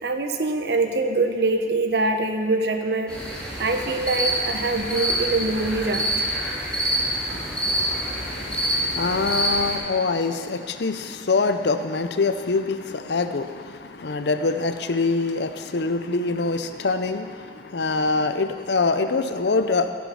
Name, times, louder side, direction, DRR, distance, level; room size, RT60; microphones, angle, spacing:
voice 1, 0.0-3.2 3.6-6.3 7.3-7.6, right 2 dB, 65° right, 6 dB, 0.9 m, -24 dB
sound 1, 3.1-9.7, right 1 dB, 5° left, 2.3 m, -26 dB
voice 2, 8.2-19.9, left 3 dB, 70° left, 9 dB, 0.6 m, -24 dB
15.0 x 7.2 x 5.7 m, 2.1 s
head